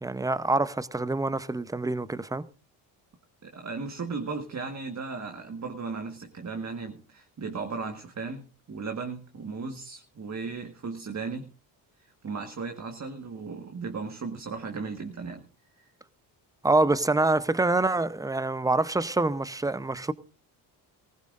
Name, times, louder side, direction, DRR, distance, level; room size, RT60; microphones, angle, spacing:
voice 1, 0.0-2.5 16.6-20.1, right 2 dB, 5° right, 0.8 m, -26 dB
voice 2, 3.4-11.5 12.2-15.5, right 4 dB, 35° right, 1.6 m, -36 dB
19.0 x 16.0 x 2.6 m
supercardioid pair, 65°, 48 cm